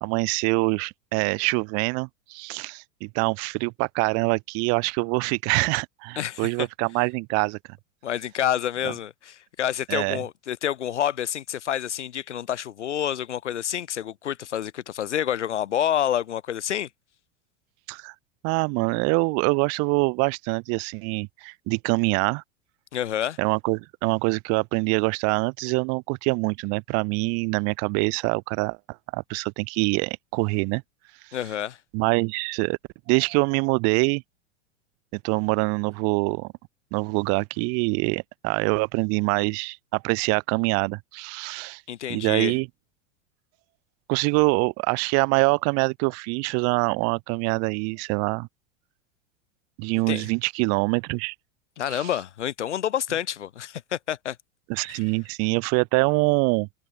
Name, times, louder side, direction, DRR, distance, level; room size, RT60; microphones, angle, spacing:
voice 1, 0.0-7.6 9.9-10.2 17.9-18.1 18.4-22.4 23.4-28.8 29.1-30.8 31.9-32.8 33.1-34.2 35.2-36.5 36.9-41.8 42.1-42.7 44.1-48.5 49.8-51.3 51.9-52.1 54.7-56.7, right 33 dB, 40° right, 2.1 m, -24 dB
voice 2, 6.2-6.5 8.0-16.9 22.9-23.4 31.3-31.8 41.9-42.5 50.1-50.3 51.8-54.4 54.9-55.0, left 10 dB, 65° left, 3.1 m, -28 dB
open air
figure-of-eight pair, 85°, 38 cm